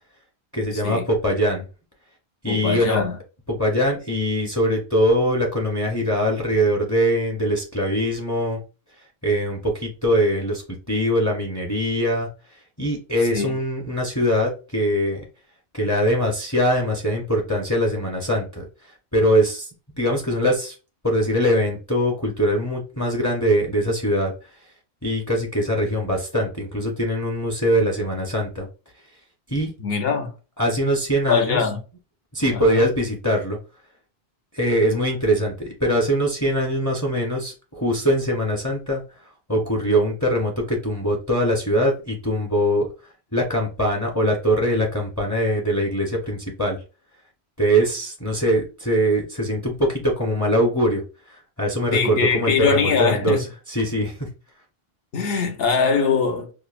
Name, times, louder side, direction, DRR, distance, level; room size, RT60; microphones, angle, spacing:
voice 1, 0.5-1.7 2.4-3.0 3.5-8.6 9.2-12.3 12.8-15.2 15.7-19.7 20.0-20.8 21.0-24.3 25.0-28.7 29.5-29.7 30.6-31.6 32.3-33.6 34.5-39.0 39.5-42.9 43.3-46.8 47.6-51.0 51.3-53.4 53.7-54.3, equal, 20° left, 0.6 m, -22 dB
voice 2, 2.5-3.2 13.3-13.6 29.8-30.3 31.3-31.8 32.5-32.8 51.9-53.4 55.1-56.5, left 5 dB, 65° left, 1.0 m, -22 dB
4.8 x 2.0 x 2.5 m
omnidirectional pair, 1.1 m